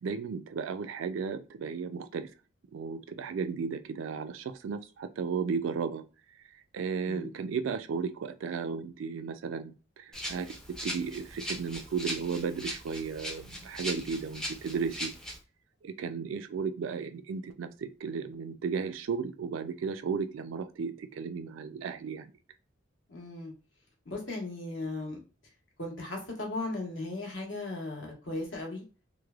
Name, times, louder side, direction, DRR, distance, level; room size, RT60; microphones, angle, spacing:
voice 1, 0.0-2.3 2.7-6.0 6.7-15.1 15.8-22.3, right 5 dB, 80° right, 9 dB, 0.4 m, -34 dB
Rattle (instrument), 10.1-15.4, equal, 5° left, 0.4 m, -39 dB
voice 2, 23.1-23.5 24.1-25.2 25.8-28.8, left 2 dB, 70° left, -1 dB, 1.0 m, -37 dB
3.1 x 2.0 x 2.3 m, 0.34 s
head